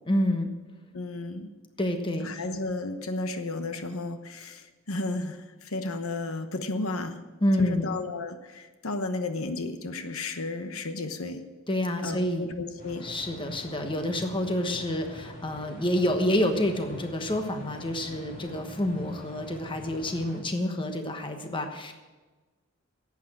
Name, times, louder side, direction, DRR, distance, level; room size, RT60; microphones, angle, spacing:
voice 1, 0.1-0.5 1.8-2.3 7.4-7.9 11.7-12.5 13.0-21.9, left 1 dB, 25° left, 6 dB, 1.1 m, -28 dB
voice 2, 0.9-1.5 2.2-7.2 7.6-11.4 12.0-13.1, left 2 dB, 85° left, 9 dB, 1.0 m, -33 dB
sound 1, 12.8-20.4, equal, 40° left, 2.8 m, -45 dB
11.5 x 8.4 x 8.9 m, 1.2 s
head